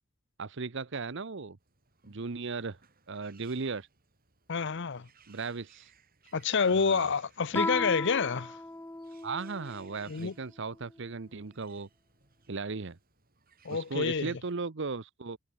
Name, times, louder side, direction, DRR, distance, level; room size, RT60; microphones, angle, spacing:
voice 1, 0.4-1.6 2.1-2.8 3.1-3.9 5.3-5.9 6.8-7.1 9.2-11.9 12.5-13.0 13.7-15.4, right 4 dB, 65° right, 0.9 m, -36 dB
Bird, 1.6-14.5, right 6 dB, 50° right, 7.4 m, -63 dB
voice 2, 4.5-5.1 6.3-8.6 10.1-10.3 13.6-14.3, left 5 dB, 65° left, 0.7 m, -28 dB
Guitar, 7.5-10.0, left 2 dB, 10° left, 0.6 m, -36 dB
head